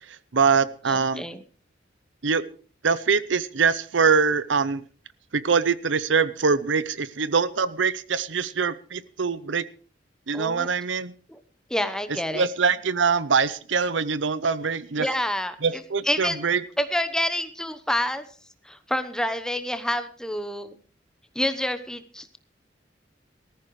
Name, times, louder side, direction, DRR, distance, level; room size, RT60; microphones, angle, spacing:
voice 1, 0.3-1.2 2.2-2.4 2.8-4.8 5.3-9.6 10.3-11.1 12.3-15.1 15.6-16.6, right 5 dB, 80° right, 17 dB, 0.7 m, -23 dB
voice 2, 0.9-1.4 10.3-10.7 11.3-11.4 11.7-12.5 15.0-16.4 16.8-18.2 18.6-20.7 21.3-22.4, left 1 dB, 5° left, 9 dB, 1.0 m, -28 dB
19.5 x 14.0 x 3.2 m, 0.41 s
head